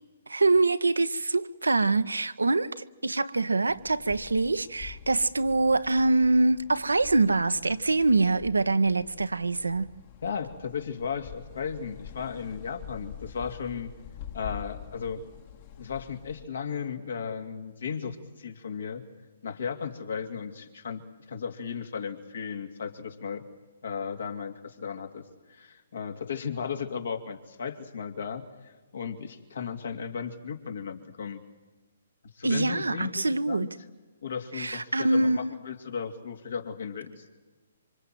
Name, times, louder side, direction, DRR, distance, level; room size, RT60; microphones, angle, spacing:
voice 1, 0.3-9.9 32.4-33.7 34.5-35.5, right 3 dB, 80° right, 1.0 m, -24 dB
sound 1, 3.7-16.5, left 9 dB, 40° left, 1.8 m, -46 dB
voice 2, 10.2-13.9 14.3-15.2 15.8-19.0 19.4-21.0 21.3-23.4 23.8-31.4 32.3-33.7 34.2-37.2, left 6 dB, 65° left, 2.6 m, -35 dB
26.5 x 25.5 x 7.7 m
figure-of-eight pair, 130°, 0 cm